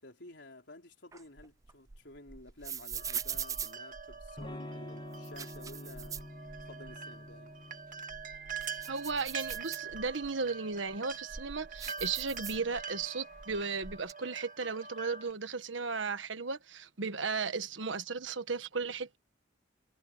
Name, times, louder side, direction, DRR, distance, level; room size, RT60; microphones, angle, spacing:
voice 1, 0.0-6.3 6.6-7.6, left 2 dB, 65° left, 4.6 m, -52 dB
sound 1, 1.1-4.5 5.1-7.0 7.3-7.4 7.9-10.3 10.9-13.0 13.3-14.1, right 7 dB, 20° right, 0.4 m, -42 dB
sound 2, 3.0-15.3, right 6 dB, 45° right, 2.1 m, -45 dB
Electric guitar / Strum, 4.4-10.1, left 1 dB, 25° left, 1.5 m, -48 dB
voice 2, 8.9-19.2, right 4 dB, 85° right, 1.4 m, -35 dB
head